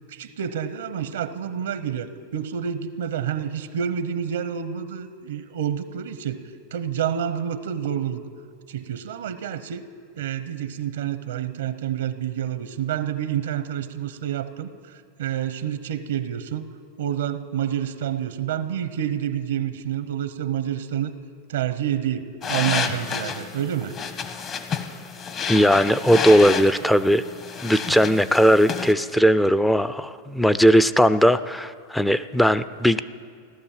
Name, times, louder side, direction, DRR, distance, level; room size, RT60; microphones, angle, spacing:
voice 1, 0.1-2.1 2.3-6.4 6.7-8.2 8.7-9.8 10.2-16.6 17.0-21.1 21.5-23.9, right 9 dB, 85° right, 12 dB, 0.8 m, -28 dB
sound 1, 22.4-28.9, left 6 dB, 35° left, 1.2 m, -30 dB
voice 2, 25.5-27.2 27.6-33.0, equal, 5° left, 14 dB, 0.5 m, -18 dB
16.5 x 12.0 x 7.4 m, 2.1 s
hypercardioid pair, 125°, 0 cm